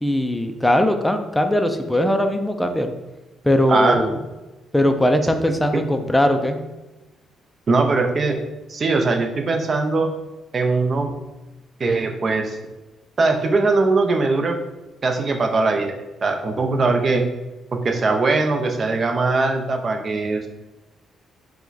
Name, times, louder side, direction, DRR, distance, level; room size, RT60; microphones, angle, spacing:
voice 1, 0.0-2.9 3.4-4.2 4.7-6.6, left 1 dB, 5° left, 6 dB, 0.4 m, -20 dB
voice 2, 3.7-4.0 5.7-5.9 7.7-8.4 8.7-10.1 10.5-11.1 11.8-12.6 13.2-14.6 15.0-17.2 17.7-20.5, right 3 dB, 40° right, 4 dB, 0.6 m, -20 dB
4.6 x 2.2 x 4.0 m, 1.1 s
cardioid pair, 90°, 0 cm